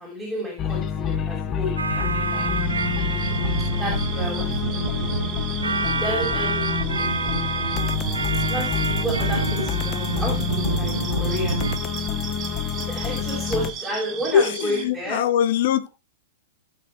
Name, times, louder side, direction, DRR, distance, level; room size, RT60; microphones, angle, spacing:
voice 1, 0.0-2.1 2.3-2.5 3.8-5.1 5.9-7.2 8.4-11.6 12.8-15.2, equal, ahead, 5.6 m, -31 dB
sound 1, 0.6-13.7, left 8 dB, 25° left, 0.9 m, -28 dB
sound 2, 1.8-11.8, right 4 dB, 75° right, 0.7 m, -27 dB
sound 3, 2.2-14.9, right 8 dB, 25° right, 2.0 m, -36 dB
voice 2, 14.3-15.9, left 9 dB, 50° left, 1.0 m, -21 dB
17.5 x 6.5 x 3.4 m
figure-of-eight pair, 100°, 0 cm